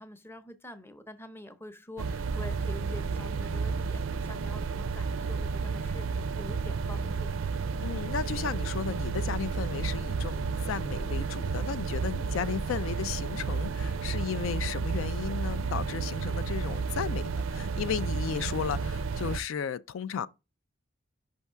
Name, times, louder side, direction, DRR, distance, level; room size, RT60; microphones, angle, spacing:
voice 1, 0.0-7.5, left 1 dB, 10° left, 0.6 m, -46 dB
sound 1, 2.0-19.4, right 5 dB, 70° right, 0.4 m, -32 dB
voice 2, 7.8-20.3, left 7 dB, 80° left, 0.4 m, -34 dB
5.4 x 3.5 x 5.5 m
head